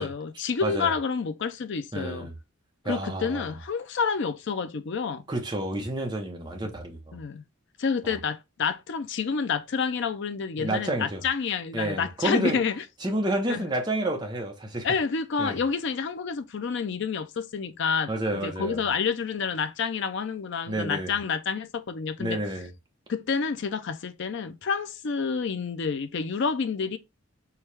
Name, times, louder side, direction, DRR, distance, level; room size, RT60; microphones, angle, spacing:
voice 1, 0.0-2.3 2.8-5.2 7.1-7.4 7.8-12.8 13.5-13.7 14.8-18.1 18.4-22.4 23.1-27.0, left 5 dB, 55° left, 0.4 m, -29 dB
voice 2, 0.6-0.9 1.9-2.3 2.8-3.5 5.3-7.2 8.0-8.2 10.6-11.2 11.7-12.6 13.0-14.9 15.4-15.6 18.1-18.8 20.7-21.1 22.2-22.7, right 1 dB, 20° right, 0.8 m, -30 dB
4.6 x 2.3 x 3.3 m
head